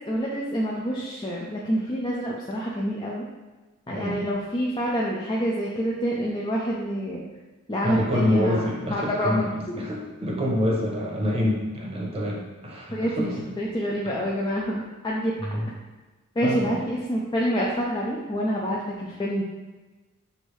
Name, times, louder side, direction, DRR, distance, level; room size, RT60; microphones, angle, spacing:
voice 1, 0.1-3.3 3.9-7.2 7.7-9.5 12.9-13.3 13.6-15.6 16.4-19.4, equal, 20° left, -4 dB, 0.4 m, -27 dB
voice 2, 3.9-4.3 7.8-13.5 14.0-14.2 15.4-15.7 16.4-16.9, left 1 dB, 30° right, -2 dB, 0.8 m, -27 dB
6.4 x 2.6 x 3.1 m, 1.2 s
head